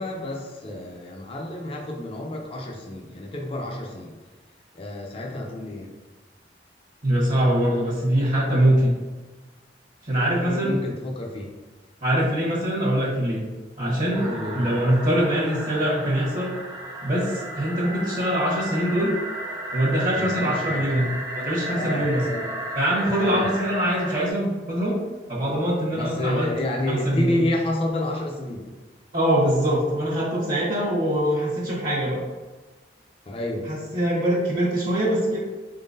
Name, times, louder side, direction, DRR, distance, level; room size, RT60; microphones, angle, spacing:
voice 1, 0.0-4.1 4.7-5.9 10.4-11.5 14.2-14.7 20.1-21.1 21.6-22.4 23.2-23.5 25.9-28.7 33.3-33.7, left 1 dB, 35° left, 0 dB, 0.5 m, -30 dB
voice 2, 7.0-9.0 10.0-10.8 12.0-13.4 13.8-14.2 14.5-16.5 17.0-19.1 19.7-22.3 22.7-25.0 25.3-26.5 26.9-27.4 29.1-32.2 33.7-35.4, equal, 50° right, -6 dB, 1.0 m, -23 dB
sound 1, 14.1-24.3, right 1 dB, 25° right, 0.5 m, -33 dB
4.2 x 3.8 x 2.6 m, 1.3 s
head